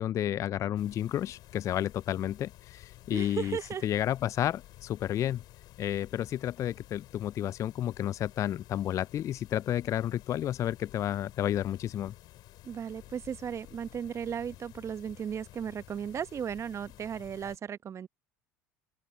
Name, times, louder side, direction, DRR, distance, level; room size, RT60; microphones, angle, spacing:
voice 1, 0.0-5.4 5.8-12.1, left 11 dB, 35° left, 0.3 m, -31 dB
sound 1, 0.8-17.6, left 16 dB, 55° left, 5.8 m, -53 dB
voice 2, 3.1-3.8 12.6-18.1, right 8 dB, 35° right, 1.1 m, -36 dB
figure-of-eight pair, 70°, 9 cm